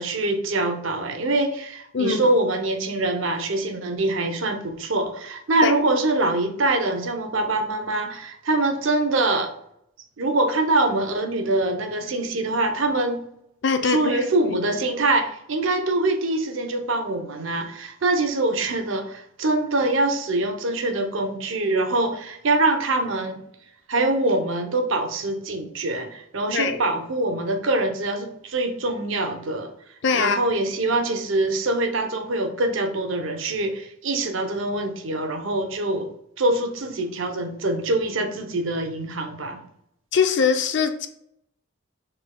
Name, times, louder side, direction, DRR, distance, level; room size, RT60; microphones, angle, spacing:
voice 1, 0.0-9.5 10.2-13.2 13.8-23.4 23.9-29.7 30.1-36.1 36.4-39.6, right 2 dB, 70° right, 0.6 m, -24 dB
voice 2, 1.9-2.3 5.6-5.7 13.6-14.5 26.5-26.8 30.0-30.4 40.1-41.1, left 5 dB, 60° left, 0.5 m, -22 dB
6.0 x 3.3 x 2.2 m
head